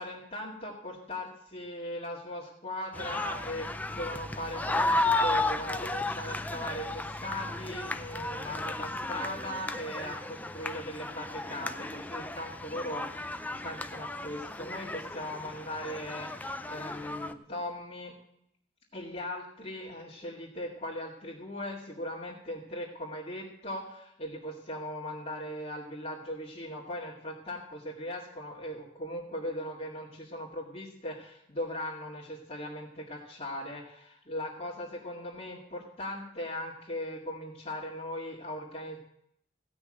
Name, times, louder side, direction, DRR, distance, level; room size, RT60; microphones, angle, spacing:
voice 1, 0.0-18.1 18.9-39.0, left 1 dB, 35° left, -7 dB, 2.1 m, -39 dB
sound 1, 2.9-17.3, left 2 dB, 10° left, 0.5 m, -34 dB
16.5 x 6.2 x 7.6 m, 0.76 s
head